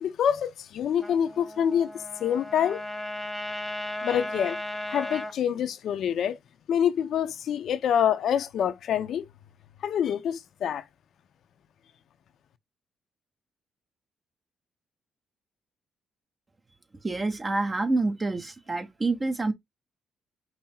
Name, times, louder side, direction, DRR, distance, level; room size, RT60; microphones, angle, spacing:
voice 1, 0.0-1.9 2.2-2.8 4.0-4.6 4.9-6.4 6.7-9.2 9.8-10.8, left 9 dB, 70° left, 0.5 m, -26 dB
Trumpet, 1.0-5.3, left 1 dB, ahead, 1.3 m, -36 dB
voice 2, 17.0-19.5, right 3 dB, 25° right, 0.9 m, -27 dB
5.5 x 2.0 x 4.4 m
cardioid pair, 90°, 0 cm